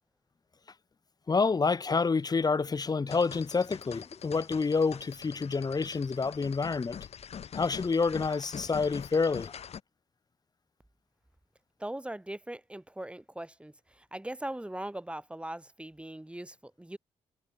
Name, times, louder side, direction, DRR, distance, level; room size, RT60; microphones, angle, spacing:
voice 1, 1.3-7.0 7.5-9.5, left 4 dB, 35° left, 1.2 m, -28 dB
sound 1, 3.1-9.8, left 8 dB, 60° left, 2.9 m, -44 dB
voice 2, 11.8-17.0, right 1 dB, 10° right, 2.7 m, -40 dB
cardioid pair, 65°, 12 cm